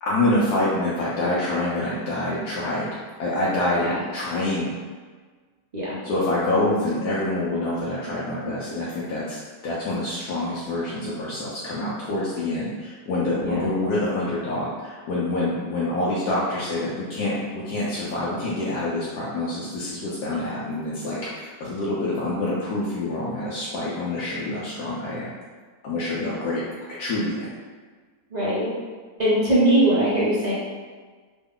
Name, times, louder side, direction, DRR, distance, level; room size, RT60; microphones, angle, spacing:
voice 1, 0.0-4.7 6.0-25.3 25.8-26.6 27.0-27.5, left 2 dB, 90° left, -8 dB, 1.2 m, -26 dB
voice 2, 28.3-28.7 29.2-30.5, right 1 dB, 60° right, -8 dB, 0.4 m, -21 dB
3.0 x 2.3 x 3.6 m, 1.5 s
omnidirectional pair, 1.6 m